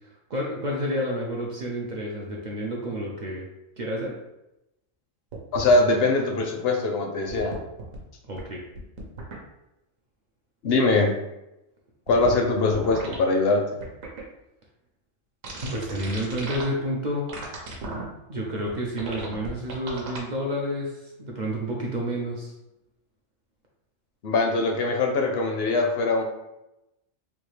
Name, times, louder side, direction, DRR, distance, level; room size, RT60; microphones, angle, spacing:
voice 1, 0.0-3.5 3.8-4.2 8.3-8.6 15.7-17.3 18.3-22.5, equal, 65° right, -2 dB, 0.4 m, -30 dB
sound 1, 5.3-5.7 7.3-8.0 8.4-8.5 8.7-9.3 12.1-12.3 12.7-13.2 13.8-14.2 15.4-16.6 17.3-18.0 18.7-18.8 19.0-20.2, right 3 dB, 85° right, 1.2 m, -35 dB
voice 2, 5.5-7.6 10.6-11.1 12.1-13.6 24.2-26.2, left 3 dB, 65° left, 2 dB, 0.7 m, -22 dB
3.5 x 2.3 x 3.1 m, 0.92 s
omnidirectional pair, 1.3 m